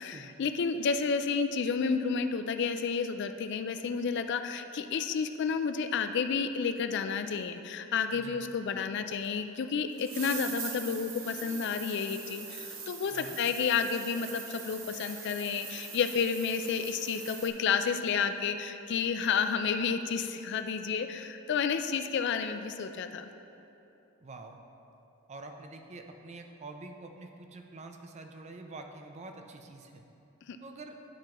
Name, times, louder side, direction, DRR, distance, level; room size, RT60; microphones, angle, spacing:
voice 1, 0.0-23.3 30.5-30.6, left 6 dB, 50° left, 8 dB, 0.3 m, -31 dB
sound 1, 9.2-9.3 10.0-17.5, right 6 dB, 65° right, 0.8 m, -42 dB
voice 2, 24.2-24.6 25.3-30.0 30.6-31.0, right 3 dB, 30° right, 4 dB, 0.4 m, -46 dB
11.5 x 4.5 x 2.9 m, 2.9 s
head